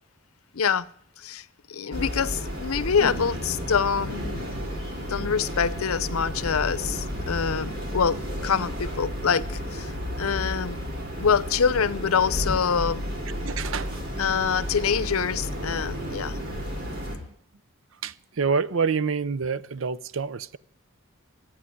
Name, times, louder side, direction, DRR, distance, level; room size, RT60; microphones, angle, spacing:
voice 1, 0.5-0.9 1.2-4.5 5.0-9.9 10.2-10.8 11.2-13.0 14.2-16.4, left 6 dB, 85° left, 0.7 m, -25 dB
sound 1, 1.9-17.2, equal, 45° right, 3.4 m, -32 dB
voice 2, 13.4-14.1 18.0-20.6, right 5 dB, 65° right, 0.6 m, -27 dB
12.5 x 9.1 x 9.5 m
head